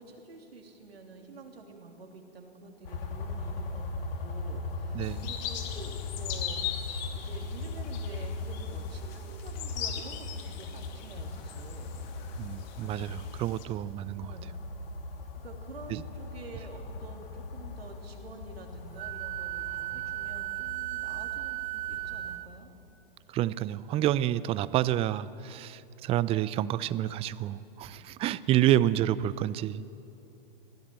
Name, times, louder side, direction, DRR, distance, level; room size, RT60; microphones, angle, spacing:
voice 1, 0.0-12.0 14.2-14.6 15.4-22.7, right 3 dB, 90° right, 2 dB, 3.1 m, -48 dB
sound 1, 2.8-22.4, left 3 dB, 70° left, 2.7 m, -39 dB
voice 2, 4.9-5.3 12.4-14.3 15.9-16.0 23.3-29.8, right 12 dB, 20° right, 18 dB, 0.4 m, -28 dB
sound 2, 5.0-13.6, left 10 dB, 50° left, 2.3 m, -41 dB
Wind instrument woodwind instrument, 19.0-22.5, right 18 dB, 55° right, 0.7 m, -35 dB
21.5 x 16.0 x 7.7 m, 2.8 s
hypercardioid pair, 120°, 29 cm